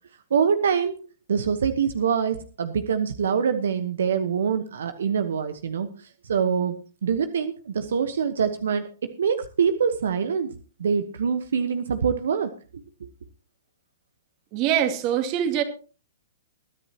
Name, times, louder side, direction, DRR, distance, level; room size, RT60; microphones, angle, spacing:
voice 1, 0.3-1.0 1.3-10.5 10.8-13.1, right 6 dB, 75° right, 9 dB, 1.1 m, -25 dB
voice 2, 14.5-15.6, right 10 dB, 40° right, 7 dB, 2.2 m, -23 dB
22.0 x 10.0 x 2.9 m, 0.37 s
hypercardioid pair, 130°, 0 cm